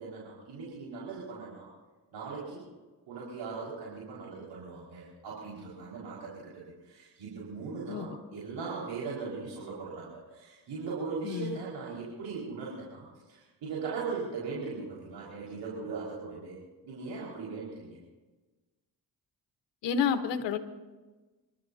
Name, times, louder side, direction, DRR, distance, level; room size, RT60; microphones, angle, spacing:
voice 1, 0.0-1.7 2.1-2.6 3.1-16.6 16.8-18.0, right 4 dB, 80° right, -6 dB, 5.2 m, -39 dB
voice 2, 11.2-11.6 19.8-20.6, left 7 dB, 90° left, 8 dB, 1.3 m, -29 dB
30.0 x 12.5 x 2.8 m, 1.2 s
supercardioid pair, 50°, 42 cm